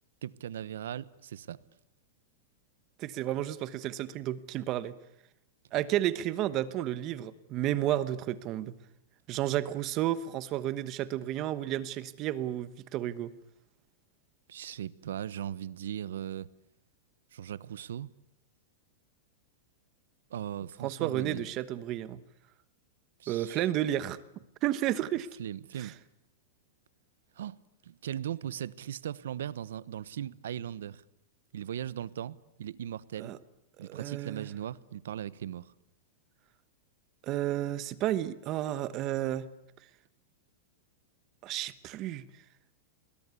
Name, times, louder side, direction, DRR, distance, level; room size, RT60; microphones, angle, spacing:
voice 1, 0.2-1.6 14.5-16.5 17.3-18.1 20.3-21.4 23.2-23.7 25.4-25.9 27.4-27.6 27.8-31.0 31.5-33.3 33.8-35.7, right 10 dB, 90° right, 1.0 m, -38 dB
voice 2, 3.0-4.9 5.7-8.7 9.3-13.3 20.8-22.2 23.3-24.2 24.6-25.3 25.8-25.9 33.2-33.4 33.8-34.5 37.2-39.5 41.4-42.3, right 13 dB, 30° right, 1.1 m, -32 dB
29.0 x 21.5 x 8.4 m
supercardioid pair, 170°, 0 cm